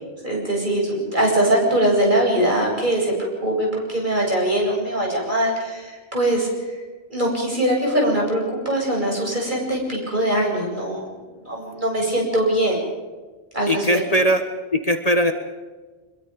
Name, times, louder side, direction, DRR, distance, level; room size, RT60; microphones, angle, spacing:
voice 1, 0.2-6.5 7.1-11.0 11.4-12.8 13.5-14.0, right 1 dB, 45° right, -2 dB, 8.3 m, -22 dB
voice 2, 13.7-14.4 14.7-15.3, equal, 35° left, 6 dB, 1.4 m, -19 dB
25.5 x 22.5 x 5.3 m, 1.3 s
omnidirectional pair, 1.1 m